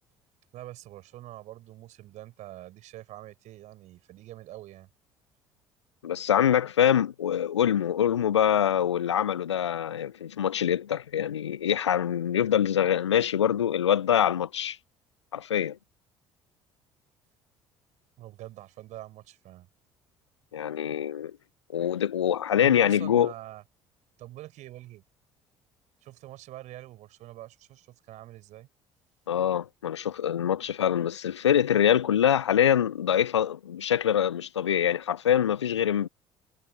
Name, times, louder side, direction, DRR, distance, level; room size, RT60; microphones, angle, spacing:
voice 1, 0.5-4.9 18.2-19.7 22.6-23.6 24.2-25.0 26.0-28.7, right 15 dB, 55° right, 5.4 m, -45 dB
voice 2, 6.0-14.8 15.3-15.8 20.5-21.3 21.7-23.3 29.3-36.1, left 9 dB, 80° left, 0.5 m, -24 dB
figure-of-eight pair, 55°, 14 cm